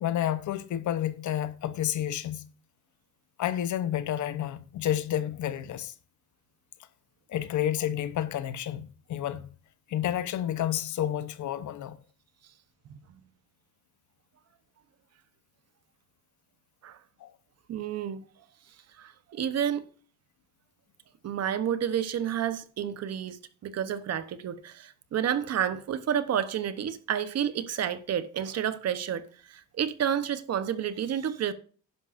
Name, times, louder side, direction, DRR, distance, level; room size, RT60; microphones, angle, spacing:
voice 1, 0.0-2.5 3.4-5.9 7.3-9.5 9.9-12.0 17.2-17.3, left 11 dB, 60° left, 0.9 m, -30 dB
voice 2, 17.7-18.2 19.0-19.9 21.2-31.5, right 9 dB, 50° right, 1.0 m, -30 dB
11.5 x 11.0 x 2.6 m
cardioid pair, 165°, 34 cm